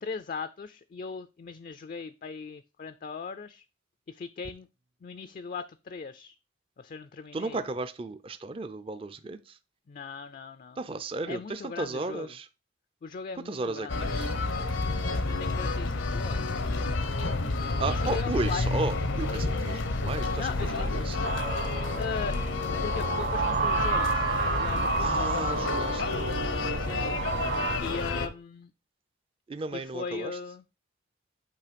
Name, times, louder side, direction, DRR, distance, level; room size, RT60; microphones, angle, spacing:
voice 1, 0.0-3.6 4.1-4.7 5.0-6.3 6.8-7.6 9.9-10.8 11.3-12.3 13.0-14.2 15.1-16.7 17.9-18.8 20.4-20.9 21.9-25.8 26.8-27.3 27.8-28.7 29.7-30.6, left 5 dB, 45° left, 0.3 m, -39 dB
voice 2, 7.3-9.6 10.8-12.5 13.5-14.3 17.8-21.2 25.0-26.8 29.5-30.4, right 3 dB, 30° right, 0.4 m, -34 dB
sound 1, 13.9-28.3, left 3 dB, 75° left, 0.7 m, -30 dB
sound 2, 17.9-22.2, right 2 dB, 75° right, 0.9 m, -41 dB
sound 3, 21.2-27.8, right 4 dB, 55° right, 1.2 m, -31 dB
8.3 x 3.1 x 5.1 m
head